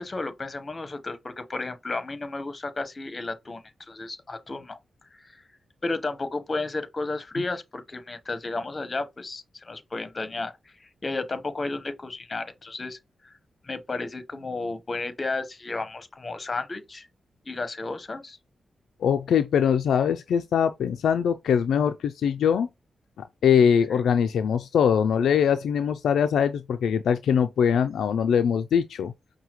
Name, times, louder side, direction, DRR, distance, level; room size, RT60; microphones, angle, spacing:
voice 1, 0.0-4.8 5.2-5.4 5.8-13.0 13.2-13.3 13.6-17.1 17.5-18.4 23.9-24.0, left 3 dB, 40° left, 0.9 m, -33 dB
voice 2, 19.0-22.7 23.4-29.1, left 7 dB, 85° left, 0.3 m, -22 dB
5.5 x 2.2 x 2.9 m
cardioid pair, 55°, 0 cm